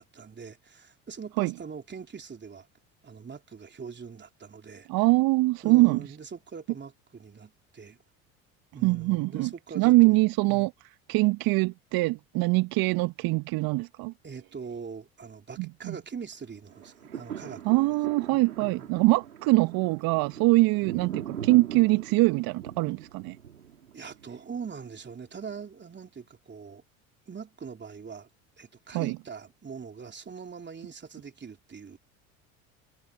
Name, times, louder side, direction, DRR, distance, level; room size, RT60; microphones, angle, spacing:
voice 1, 0.0-2.7 3.0-4.9 5.6-8.0 8.7-10.2 10.5-10.7 14.2-17.9 18.3-18.9 23.9-26.8 27.3-28.3 28.6-32.0, right 6 dB, 25° right, 3.3 m, -42 dB
voice 2, 4.9-6.1 8.8-14.1 15.6-16.0 17.6-23.4 28.9-29.2, right 21 dB, 55° right, 1.4 m, -23 dB
sound 1, 16.7-25.0 25.5-25.6, right 9 dB, 85° right, 4.1 m, -41 dB
figure-of-eight pair, 65°, 43 cm